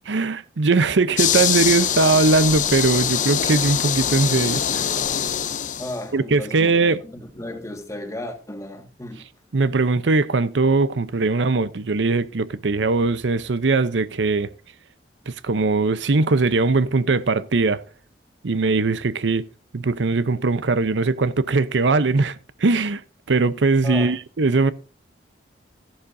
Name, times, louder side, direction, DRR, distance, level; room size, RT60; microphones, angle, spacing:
voice 1, 0.1-4.8 6.1-7.0 9.5-14.5 15.3-17.8 18.4-19.5 19.7-23.0 23.3-24.7, right 3 dB, 80° right, 0.7 m, -20 dB
Korea Seoul Crickets Some Traffic, 1.2-6.0, left 9 dB, 45° left, 0.7 m, -23 dB
voice 2, 5.8-6.8 7.0-9.2 23.8-24.1, left 1 dB, 20° left, 1.7 m, -34 dB
14.0 x 11.5 x 2.6 m
head